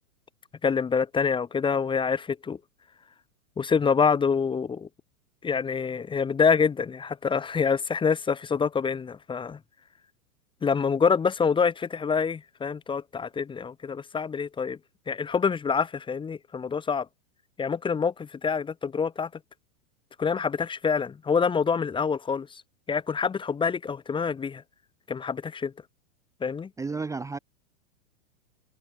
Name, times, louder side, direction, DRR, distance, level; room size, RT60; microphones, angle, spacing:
voice 1, 0.6-2.6 3.6-4.9 5.4-9.6 10.6-14.8 15.1-17.0 17.6-19.3 20.2-22.5 22.9-24.6 25.1-25.7 26.4-26.7, left 6 dB, 10° left, 1.5 m, -26 dB
voice 2, 26.8-27.4, right 4 dB, 5° right, 1.2 m, -32 dB
hypercardioid pair, 145°, 45 cm